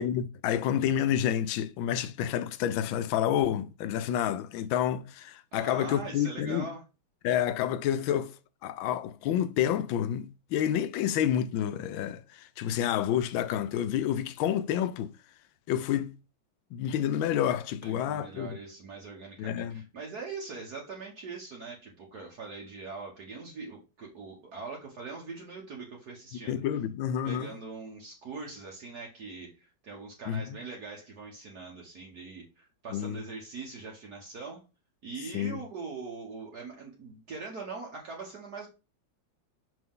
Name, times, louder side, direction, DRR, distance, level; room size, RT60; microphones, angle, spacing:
voice 1, 0.0-6.7 7.2-8.3 8.6-15.1 15.7-16.1 16.7-18.6 19.4-19.8 26.5-27.5 30.3-30.6 32.9-33.2 35.3-35.6, left 10 dB, 85° left, 1.4 m, -29 dB
voice 2, 5.5-6.8 17.8-26.6 27.2-34.6 35.0-38.7, right 4 dB, 55° right, 1.7 m, -42 dB
6.1 x 5.5 x 3.7 m
omnidirectional pair, 2.1 m